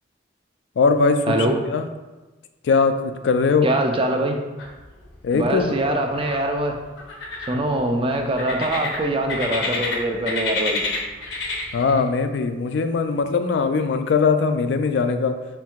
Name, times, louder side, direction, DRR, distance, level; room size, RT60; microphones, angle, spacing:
voice 1, 0.8-1.4 1.7-1.9 2.6-3.7 5.2-6.0 11.7-15.3, left 4 dB, 70° left, 8 dB, 0.3 m, -20 dB
voice 2, 3.6-4.4 5.3-6.8 7.5-10.8, right 1 dB, 30° right, 3 dB, 0.4 m, -23 dB
sound 1, 4.6-5.1 5.4-6.4 7.0-7.8 8.4-10.0 10.3-12.0, left 3 dB, 90° left, 0.8 m, -28 dB
4.5 x 3.5 x 2.3 m, 1.2 s
head